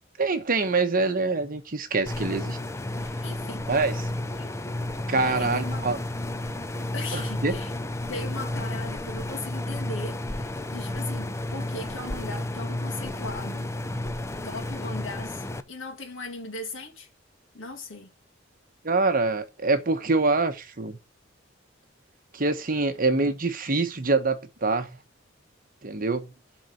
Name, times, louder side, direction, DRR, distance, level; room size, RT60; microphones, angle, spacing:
voice 1, 0.2-2.6 3.7-4.1 5.1-6.0 7.1-7.6 18.8-21.0 22.3-25.0 25.8-26.3, right 3 dB, 45° right, 1.1 m, -25 dB
sound 1, 2.1-15.6, left 1 dB, 15° left, 0.5 m, -32 dB
voice 2, 3.0-3.7 4.4-4.5 5.2-5.8 6.9-7.7 8.1-13.7 14.4-17.1 17.5-18.1, left 2 dB, 80° left, 2.1 m, -38 dB
7.5 x 4.0 x 6.3 m
head